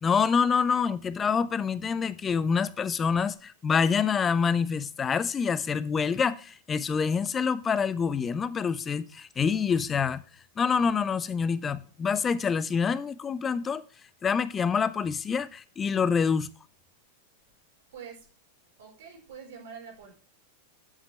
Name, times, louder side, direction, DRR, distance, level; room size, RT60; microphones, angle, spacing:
voice 1, 0.0-10.2 10.6-13.8 14.2-16.5, left 6 dB, 20° left, 0.6 m, -26 dB
voice 2, 17.9-18.3 18.8-20.1, right 6 dB, 60° right, 4.5 m, -45 dB
11.0 x 8.1 x 3.3 m
figure-of-eight pair, 90°, 0 cm